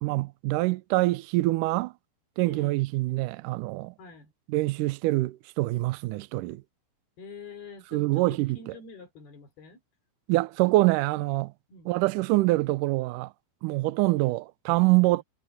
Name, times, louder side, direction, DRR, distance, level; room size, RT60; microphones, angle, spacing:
voice 1, 0.0-1.9 2.4-3.9 4.5-6.6 7.9-8.6 10.3-11.5 11.9-13.3 13.6-15.2, right 20 dB, 80° right, 1.9 m, -25 dB
voice 2, 2.5-2.8 4.0-4.3 7.2-9.8 11.7-11.9 14.1-14.4 15.1-15.2, left 4 dB, 85° left, 6.3 m, -46 dB
omnidirectional pair, 4.4 m